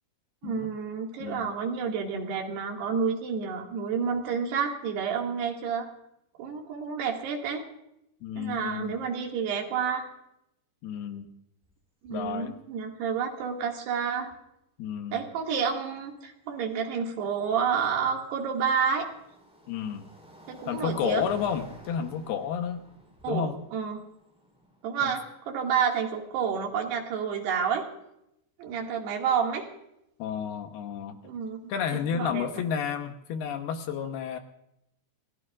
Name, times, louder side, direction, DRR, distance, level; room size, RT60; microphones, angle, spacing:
voice 1, 0.4-5.9 6.4-7.6 8.4-10.1 12.0-14.3 15.1-19.1 20.5-21.3 23.2-24.0 24.8-27.9 28.6-29.7 31.2-31.7 32.1-32.5, right 6 dB, 75° right, 1 dB, 4.2 m, -29 dB
voice 2, 1.2-1.5 8.2-9.0 10.8-11.3 12.1-12.5 14.8-15.2 19.7-20.1 20.7-22.8 23.3-23.6 25.0-25.1 30.2-31.2 31.7-34.4, left 8 dB, 75° left, 6 dB, 2.9 m, -31 dB
sound 1, 11.6-11.7 12.1-12.5 14.3-14.4 17.4-25.5, equal, ahead, 4.9 m, -50 dB
29.0 x 16.5 x 2.5 m, 0.81 s
omnidirectional pair, 4.9 m